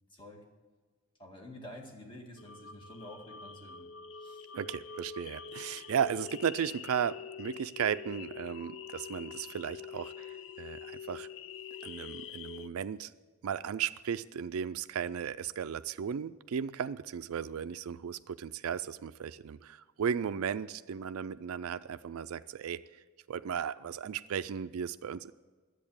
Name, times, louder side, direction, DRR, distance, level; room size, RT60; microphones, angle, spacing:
voice 1, 0.1-0.4 1.2-3.9 4.2-4.5, left 1 dB, 25° left, 0 dB, 1.9 m, -49 dB
sound 1, 2.4-12.7, left 7 dB, 60° left, 0.5 m, -45 dB
voice 2, 4.5-11.3 11.8-13.1 13.4-22.8 23.3-25.3, right 8 dB, 80° right, 12 dB, 0.4 m, -35 dB
11.0 x 8.1 x 8.7 m, 1.4 s
head